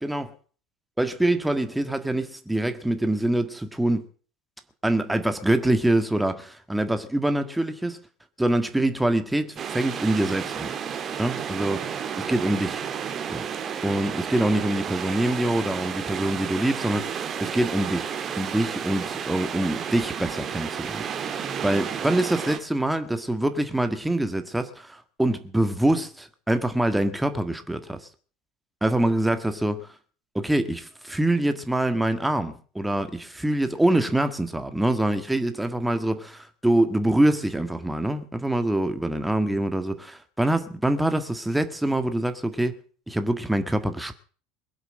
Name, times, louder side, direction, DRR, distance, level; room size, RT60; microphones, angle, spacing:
voice 1, 0.0-0.3 1.0-4.0 4.8-8.0 8.4-10.7 11.2-11.8 12.3-12.8 13.3-13.4 13.8-28.1 28.8-29.9 30.4-42.7 43.1-44.2, right 1 dB, 5° right, 1.7 m, -25 dB
sound 1, 9.6-22.6, right 7 dB, 35° right, 2.4 m, -32 dB
22.0 x 8.0 x 6.4 m
hypercardioid pair, 75°, 0 cm